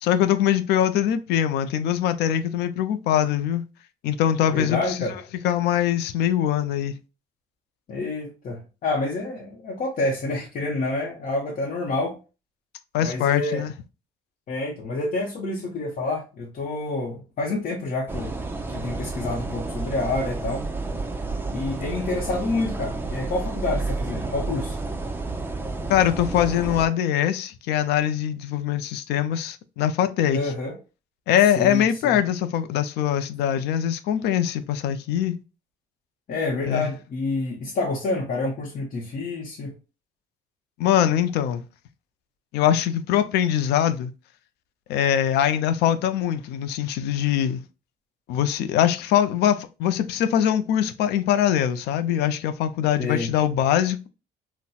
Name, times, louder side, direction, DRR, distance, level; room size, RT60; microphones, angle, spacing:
voice 1, 0.0-3.6 4.0-4.8 5.4-6.9 12.9-13.7 25.9-30.4 31.3-35.3 36.6-36.9 40.8-41.6 42.5-44.1 44.9-47.6 48.3-54.1, left 10 dB, 80° left, 0.4 m, -22 dB
voice 2, 4.5-5.2 7.9-12.2 13.0-13.7 14.5-18.4 18.7-20.7 21.5-24.8 30.3-30.8 31.6-32.2 36.3-39.8 53.0-53.3, left 2 dB, 50° left, 0.7 m, -28 dB
sound 1, 18.1-26.9, right 3 dB, 10° right, 0.5 m, -30 dB
4.1 x 2.1 x 2.3 m
cardioid pair, 110°, 17 cm